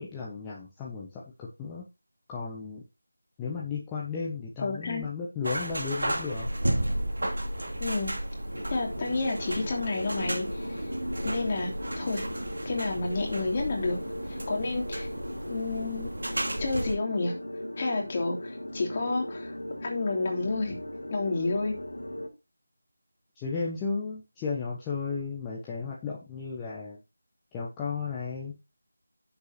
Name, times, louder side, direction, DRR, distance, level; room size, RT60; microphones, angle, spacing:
voice 1, 0.0-1.8 2.3-2.8 3.4-6.5 23.3-27.0 27.5-28.6, left 5 dB, 10° left, -4 dB, 1.2 m, -34 dB
voice 2, 4.6-5.0 7.8-8.1 8.7-10.9 11.2-11.7 12.0-12.2 12.6-14.0 14.3-15.1 15.5-16.1 16.6-17.3 17.8-19.5 19.8-20.8 21.1-21.7, left 3 dB, 30° left, 0 dB, 2.9 m, -30 dB
sound 1, 5.4-17.0, right 1 dB, 70° right, 2.6 m, -33 dB
sound 2, 8.5-22.3, left 1 dB, 90° left, 2.2 m, -38 dB
9.6 x 7.1 x 2.9 m, 0.26 s
figure-of-eight pair, 165°, 0 cm